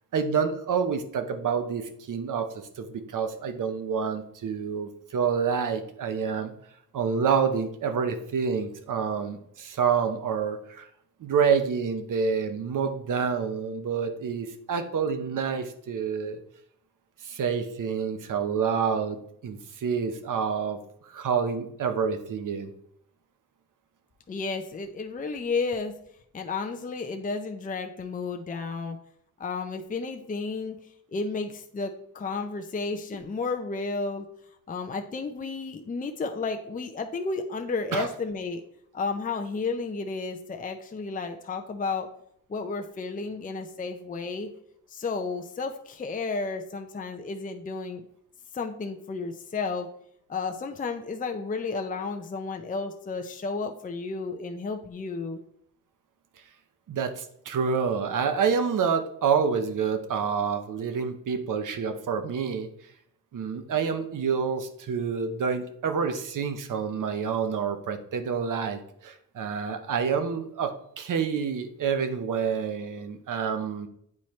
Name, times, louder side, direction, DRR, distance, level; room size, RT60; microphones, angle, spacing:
voice 1, 0.1-6.5 6.9-10.9 11.2-16.4 17.2-20.8 21.1-22.7 37.9-38.1 56.9-62.7 63.3-73.9, right 6 dB, 85° right, 8 dB, 0.8 m, -28 dB
voice 2, 24.3-25.9 26.3-29.0 29.4-30.8 31.1-34.3 34.7-38.6 38.9-42.1 42.5-44.5 44.9-48.0 48.5-49.9 50.3-55.4, left 4 dB, 25° left, 4 dB, 0.5 m, -32 dB
8.5 x 4.3 x 3.1 m, 0.70 s
wide cardioid pair, 110°, 31 cm